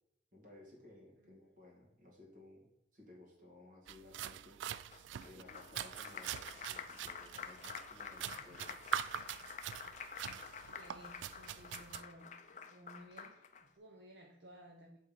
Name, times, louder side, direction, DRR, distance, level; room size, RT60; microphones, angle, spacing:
voice 1, 0.3-8.8, left 2 dB, 45° right, -2 dB, 2.2 m, -59 dB
voice 2, 1.2-1.5 10.7-15.0, right 1 dB, 60° right, 0 dB, 0.8 m, -57 dB
sound 1, 3.9-12.0, right 10 dB, 80° right, 0.3 m, -44 dB
Applause, 4.9-13.6, left 6 dB, 40° left, 0.5 m, -49 dB
8.1 x 3.7 x 5.1 m, 0.84 s
head